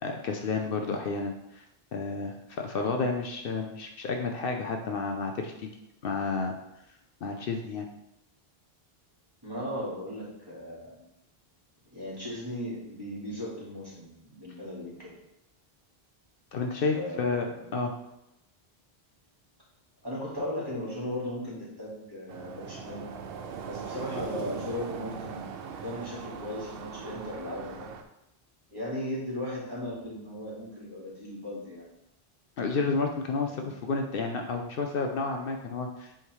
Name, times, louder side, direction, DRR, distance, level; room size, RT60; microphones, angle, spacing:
voice 1, 0.0-1.6 1.9-5.7 6.0-6.6 7.2-7.9 16.5-17.5 17.7-17.9 32.6-36.2, left 4 dB, 65° left, 3 dB, 0.8 m, -31 dB
voice 2, 9.4-11.0 11.9-15.1 16.9-17.6 20.0-23.0 23.7-27.9 28.7-31.9 33.5-33.9, left 1 dB, 25° right, -7 dB, 2.0 m, -37 dB
sound 1, 22.3-28.0, right 6 dB, 70° right, 0.8 m, -40 dB
8.2 x 3.6 x 3.1 m, 0.86 s
omnidirectional pair, 1.0 m